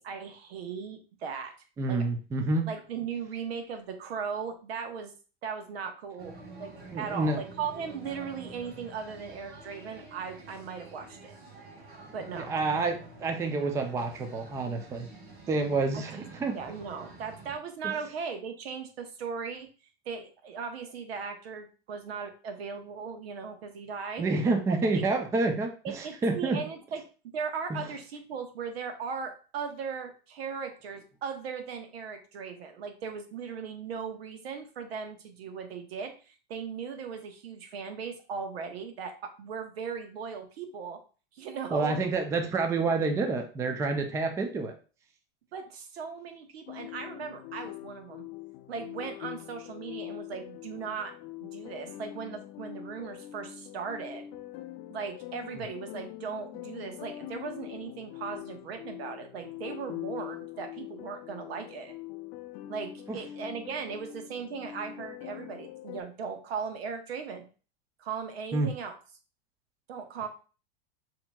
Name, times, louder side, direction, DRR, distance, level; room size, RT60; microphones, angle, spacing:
voice 1, 0.0-1.5 1.9-2.0 2.7-5.1 5.4-11.3 12.1-12.5 15.9-16.3 16.5-19.7 20.0-24.2 24.7-25.1 25.8-27.0 27.3-41.0 41.3-42.0 45.5-48.2 48.7-51.1 51.4-54.3 54.9-61.9 62.7-67.4 68.0-68.9 69.9-70.3, right 6 dB, 80° right, 6 dB, 1.1 m, -38 dB
voice 2, 1.8-2.7 6.9-7.4 12.4-15.1 15.5-16.6 24.2-26.6 27.7-27.8 41.7-44.7 68.5-68.7, right 3 dB, 10° right, 5 dB, 0.4 m, -28 dB
sound 1, 6.2-17.6, right 3 dB, 55° right, 1.7 m, -48 dB
sound 2, 46.7-66.0, left 14 dB, 50° left, 0.5 m, -43 dB
6.8 x 2.9 x 2.3 m, 0.36 s
supercardioid pair, 135°, 31 cm